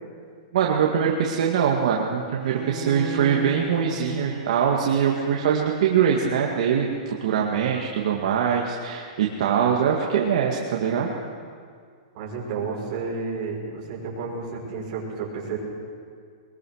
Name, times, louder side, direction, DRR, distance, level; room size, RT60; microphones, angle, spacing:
voice 1, 0.5-11.1, right 7 dB, 55° right, -1 dB, 2.0 m, -23 dB
Bowed string instrument, 2.4-8.5, left 1 dB, 15° right, 3.4 m, -39 dB
voice 2, 12.1-15.6, right 4 dB, 35° right, -3 dB, 6.0 m, -31 dB
22.0 x 21.0 x 6.5 m, 2.1 s
supercardioid pair, 175°, 4 cm